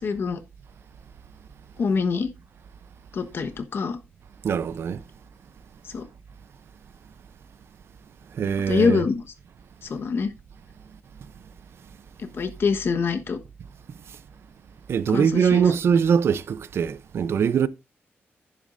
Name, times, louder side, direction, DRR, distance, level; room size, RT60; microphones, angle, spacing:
voice 1, 0.0-0.4 1.8-2.3 3.1-4.0 5.9-6.0 8.7-9.2 9.8-10.3 12.2-13.4 15.1-15.6, left 5 dB, 60° left, 1.2 m, -25 dB
voice 2, 4.4-5.0 8.3-9.0 14.9-17.7, right 7 dB, 70° right, 0.6 m, -22 dB
10.5 x 10.5 x 2.6 m
wide cardioid pair, 135°, 4 cm